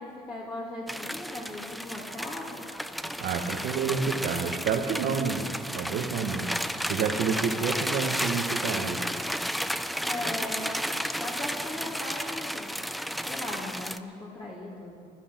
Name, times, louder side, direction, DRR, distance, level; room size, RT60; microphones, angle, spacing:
voice 1, 0.0-2.7 10.0-10.9 11.2-15.0, left 1 dB, 30° left, -5 dB, 2.5 m, -38 dB
sound 1, 0.9-14.0, equal, ahead, 0.4 m, -33 dB
voice 2, 3.2-5.4 5.7-6.5 6.8-9.0, right 6 dB, 75° right, 6 dB, 1.5 m, -29 dB
16.5 x 12.0 x 6.1 m, 2.2 s
cardioid pair, 110°, 17 cm